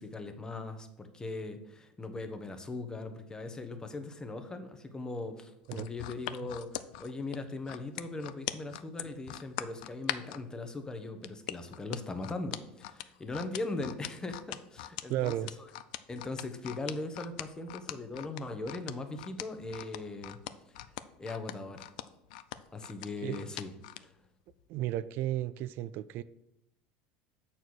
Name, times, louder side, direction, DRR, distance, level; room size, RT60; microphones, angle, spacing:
voice 1, 0.0-15.7 16.1-20.4 20.7-21.9 22.7-24.1, left 2 dB, 15° left, 8 dB, 1.0 m, -40 dB
sound 1, 5.7-10.4 11.2-24.0 24.5-24.6, left 15 dB, 80° left, 0.4 m, -40 dB
voice 2, 15.1-15.5 23.2-23.4 24.7-26.2, right 13 dB, 60° right, 15 dB, 0.3 m, -33 dB
6.9 x 4.4 x 6.2 m, 0.85 s
supercardioid pair, 105°, 4 cm